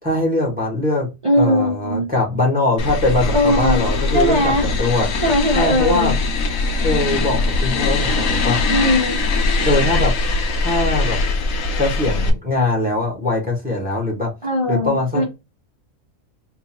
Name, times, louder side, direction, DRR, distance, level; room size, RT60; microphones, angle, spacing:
voice 1, 0.0-1.1 1.4-5.1 5.5-6.2 6.8-8.6 9.6-10.1 10.6-11.2 11.8-14.3 14.7-15.2, left 2 dB, 5° right, -2 dB, 1.5 m, -21 dB
voice 2, 1.2-2.1 3.3-4.6 5.2-6.1 8.7-9.2 14.4-15.2, left 1 dB, 25° right, -2 dB, 0.9 m, -19 dB
sound 1, 2.8-12.3, left 3 dB, 85° left, 1.2 m, -21 dB
3.7 x 2.6 x 2.9 m, 0.24 s
omnidirectional pair, 1.4 m